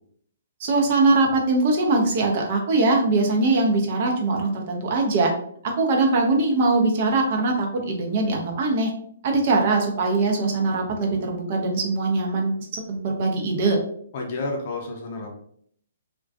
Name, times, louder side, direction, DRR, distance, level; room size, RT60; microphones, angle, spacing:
voice 1, 0.6-5.3 5.6-8.9 9.2-13.8, right 3 dB, 45° right, 1 dB, 0.6 m, -22 dB
voice 2, 14.1-15.3, left 2 dB, 45° left, 0 dB, 0.6 m, -30 dB
2.3 x 2.2 x 2.5 m, 0.63 s
figure-of-eight pair, 125°, 0 cm